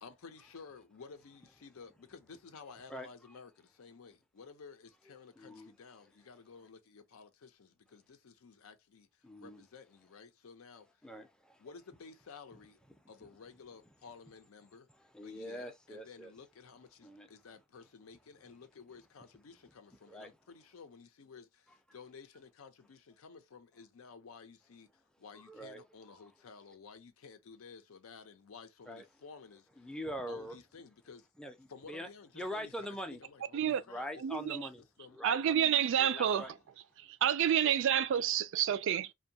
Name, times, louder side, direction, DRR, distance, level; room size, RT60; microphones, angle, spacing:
voice 1, 0.0-10.9 11.6-12.8 13.1-14.9 15.2-24.9 25.2-29.9 30.3-31.3 31.7-34.6 35.0-35.2 36.0-36.6 37.6-37.8, left 5 dB, 75° left, 0.5 m, -53 dB
voice 2, 5.4-5.7 9.2-9.6 11.0-11.6 13.2-13.3 15.1-16.3 17.0-17.3 20.1-20.3 25.3-26.2 28.9-29.0 29.8-30.6 31.4-32.1 32.3-33.2 33.6-34.8 35.1-35.9 36.2-36.5, equal, 5° left, 0.4 m, -43 dB
voice 3, 34.2-34.7 35.2-36.4 37.2-39.1, right 9 dB, 60° right, 0.3 m, -29 dB
2.6 x 2.2 x 2.7 m
head